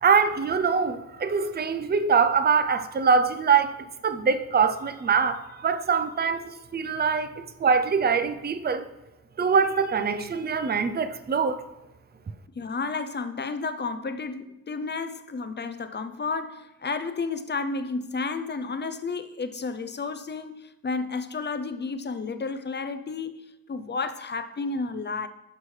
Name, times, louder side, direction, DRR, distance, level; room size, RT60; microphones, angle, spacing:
voice 1, 0.0-7.3 7.6-8.9 9.4-11.7, right 5 dB, 30° right, 0.5 m, -23 dB
voice 2, 12.6-25.3, left 4 dB, 30° left, 0.5 m, -32 dB
11.5 x 5.9 x 3.2 m
wide cardioid pair, 110°, 35 cm